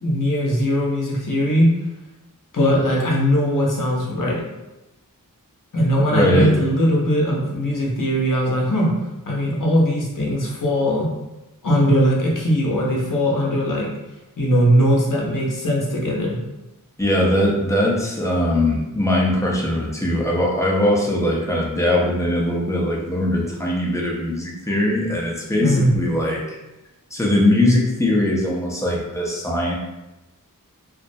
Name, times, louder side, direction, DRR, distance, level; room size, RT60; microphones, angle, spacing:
voice 1, 0.0-1.7 2.5-4.4 5.7-8.9 9.3-11.1 11.6-13.9 14.4-16.4 25.6-25.9, equal, 65° left, -3 dB, 0.7 m, -20 dB
voice 2, 6.1-6.5 17.0-26.4 27.1-29.7, left 1 dB, 10° left, -3 dB, 0.5 m, -20 dB
2.3 x 2.0 x 2.6 m, 0.98 s
wide cardioid pair, 50°, 35 cm